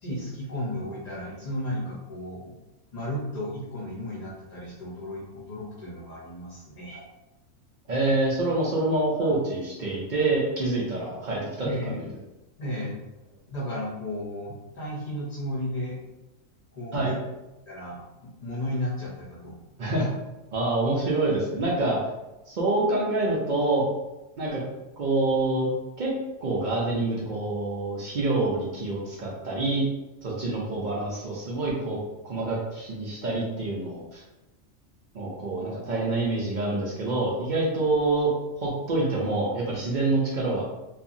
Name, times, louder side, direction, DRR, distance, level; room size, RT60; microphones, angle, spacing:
voice 1, 0.0-2.6 2.9-7.0 11.6-12.2 12.6-13.0 13.5-16.0 16.7-17.2 17.7-19.5, left 1 dB, 40° left, -4 dB, 0.6 m, -34 dB
voice 2, 7.9-12.1 16.9-17.1 19.8-20.1 20.5-22.0 22.5-23.8 24.4-24.6 25.0-25.7 26.0-26.1 26.4-29.8 30.2-32.0 32.2-34.2 35.1-38.3 38.6-40.6, right 2 dB, 65° right, -4 dB, 0.4 m, -26 dB
2.8 x 2.4 x 2.5 m, 1.0 s
omnidirectional pair, 1.4 m